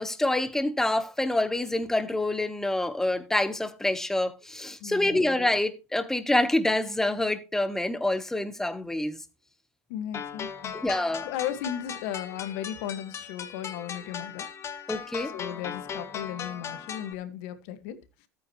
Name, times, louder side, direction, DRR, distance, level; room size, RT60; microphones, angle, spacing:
voice 1, 0.0-9.2 10.7-11.3 14.9-15.3, left 1 dB, 5° left, 1.2 m, -27 dB
voice 2, 4.8-5.3 9.9-10.8 11.2-14.5 15.3-18.0, left 10 dB, 65° left, 1.8 m, -36 dB
sound 1, 10.1-17.1, left 7 dB, 35° left, 1.9 m, -38 dB
13.5 x 9.2 x 3.1 m
supercardioid pair, 115°, 9 cm